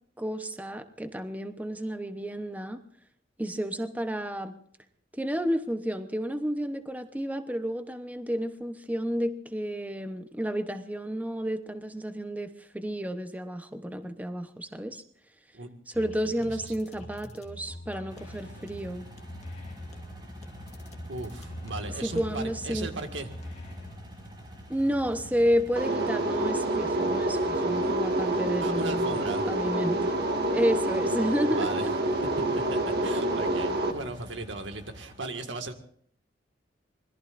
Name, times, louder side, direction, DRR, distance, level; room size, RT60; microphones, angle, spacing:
voice 1, 0.2-2.8 3.4-4.6 5.1-15.0 15.9-19.1 22.0-22.9 24.7-29.2 29.5-30.1 30.5-31.9, equal, 10° right, 8 dB, 0.9 m, -31 dB
sound 1, 15.9-23.9, equal, 40° left, 2.1 m, -44 dB
sound 2, 18.1-35.2, equal, 25° right, 5.5 m, -45 dB
voice 2, 21.1-23.3 28.6-29.5 31.6-31.9 32.5-35.7, right 2 dB, 90° right, 6 dB, 1.9 m, -37 dB
sound 3, 25.8-33.9, right 1 dB, 60° right, 1.8 m, -27 dB
26.0 x 21.5 x 2.6 m, 0.63 s
head